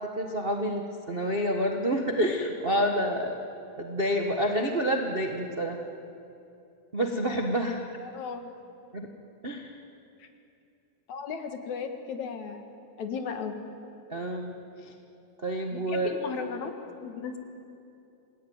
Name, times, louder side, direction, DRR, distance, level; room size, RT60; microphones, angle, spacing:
voice 1, 0.0-3.4 3.8-5.8 6.9-7.8 8.9-9.1 9.4-9.7 14.1-14.9 15.4-16.1, equal, 70° right, 2 dB, 0.5 m, -28 dB
voice 2, 8.0-8.4 10.2-10.3 11.1-12.6 13.0-13.6 15.7-16.7 17.0-17.4, left 6 dB, 60° left, 5 dB, 2.9 m, -35 dB
28.0 x 19.0 x 9.4 m, 2.7 s
omnidirectional pair, 3.8 m